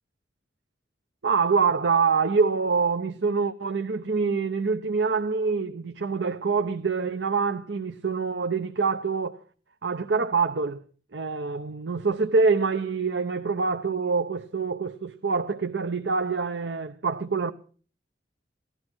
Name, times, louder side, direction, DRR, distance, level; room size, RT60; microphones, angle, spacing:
voice 1, 1.2-9.4 9.8-10.8 11.1-17.5, right 4 dB, 85° right, 0.8 m, -25 dB
16.5 x 12.0 x 6.2 m
head